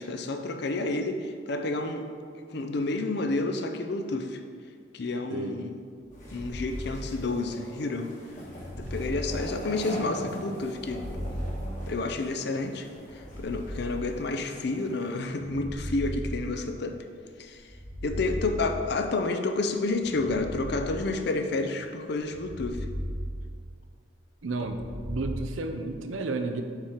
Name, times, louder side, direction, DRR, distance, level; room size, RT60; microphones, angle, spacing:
voice 1, 0.0-2.1 2.5-4.4 4.9-5.7 6.3-8.1 8.8-11.0 11.9-12.9 13.1-17.0 17.4-17.7 18.0-22.9, left 3 dB, 55° left, 5 dB, 0.5 m, -30 dB
voice 2, 5.3-5.6 24.4-24.8 25.1-26.6, right 3 dB, 80° right, 7 dB, 0.5 m, -31 dB
sound 1, 6.0-7.6 8.4-10.1 10.6-12.4 13.0-14.5 15.3-17.0 17.6-19.2 20.0-21.6 22.2-24.0 24.5-25.4, equal, 5° left, 1.1 m, -37 dB
sound 2, 6.1-15.2, equal, 40° left, 1.4 m, -42 dB
5.7 x 4.5 x 5.0 m, 2.1 s
head